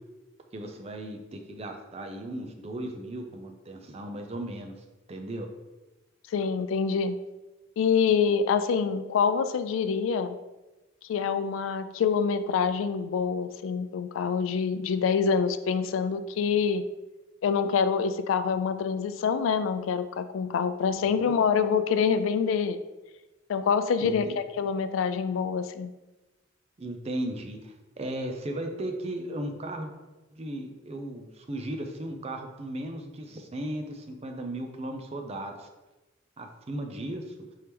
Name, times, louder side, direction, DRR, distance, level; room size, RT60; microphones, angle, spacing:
voice 1, 0.5-4.7 5.1-5.5 21.0-21.3 24.0-24.4 26.8-29.9 30.3-35.7 36.4-37.3, right 1 dB, 30° right, 4 dB, 0.5 m, -36 dB
voice 2, 6.3-7.2 7.8-10.4 11.1-16.8 17.4-22.8 23.5-25.9, left 6 dB, 85° left, 11 dB, 0.3 m, -26 dB
4.6 x 2.9 x 3.4 m, 1.1 s
head